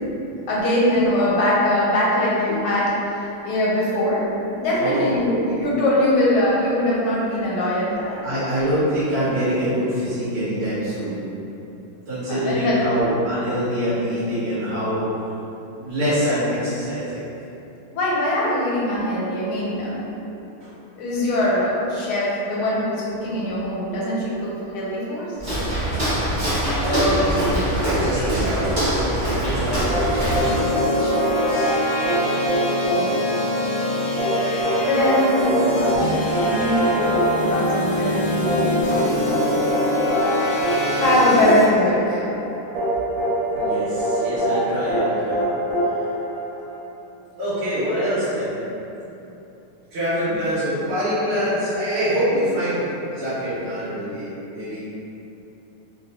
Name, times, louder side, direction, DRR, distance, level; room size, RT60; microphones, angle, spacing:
voice 1, 0.5-4.2 4.5-8.2 12.3-12.8 17.9-20.0 21.0-25.3 32.9-33.2 34.8-39.2 41.0-42.3, left 1 dB, 90° left, -6 dB, 1.6 m, -22 dB
voice 2, 8.2-11.2 12.1-15.0 15.8-17.2 20.6-20.7 26.8-30.3 30.8-31.1 31.5-31.8 43.6-45.4 47.4-48.5 49.9-52.8 53.1-54.8, equal, 70° right, -15 dB, 2.0 m, -25 dB
Walk footsteps, 25.4-30.7, right 1 dB, 35° right, 0.8 m, -23 dB
sound 1, 29.9-46.8, right 1 dB, 90° right, 2.1 m, -24 dB
sound 2, 30.2-41.7, left 1 dB, 75° left, 1.1 m, -24 dB
4.2 x 2.3 x 2.7 m, 2.9 s
omnidirectional pair, 2.4 m